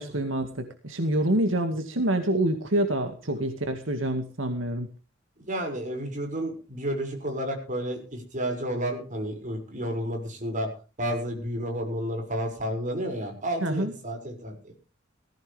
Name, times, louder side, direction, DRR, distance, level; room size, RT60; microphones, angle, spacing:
voice 1, 0.0-4.9 13.6-13.9, right 1 dB, 80° right, 6 dB, 2.1 m, -27 dB
voice 2, 5.4-10.7 11.0-14.5, equal, 40° right, 3 dB, 6.3 m, -31 dB
18.5 x 15.5 x 3.5 m, 0.34 s
head